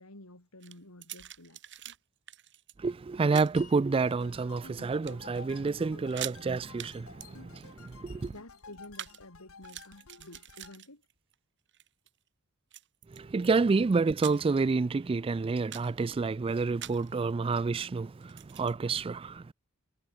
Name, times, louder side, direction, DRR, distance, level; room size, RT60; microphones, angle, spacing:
voice 1, 0.0-2.0 8.3-11.0, left 1 dB, 90° left, 4.3 m, -51 dB
sound 1, 0.6-2.0 2.3-2.7 3.3-3.6 4.2-4.7 5.0-5.4 5.7-5.8 6.0-6.4 6.8-6.9 7.2-9.2 9.5-11.3 11.7-12.1 12.7-13.5 13.9-14.6 15.0-15.1 15.5-16.0 16.8-17.1 18.2-18.7, right 12 dB, 55° right, 4.7 m, -44 dB
voice 2, 2.8-8.3 13.1-19.5, right 4 dB, 25° right, 0.3 m, -29 dB
sound 2, 3.6-6.7, left 7 dB, 35° left, 7.4 m, -60 dB
sound 3, 3.9-10.8, left 4 dB, 70° left, 1.5 m, -52 dB
head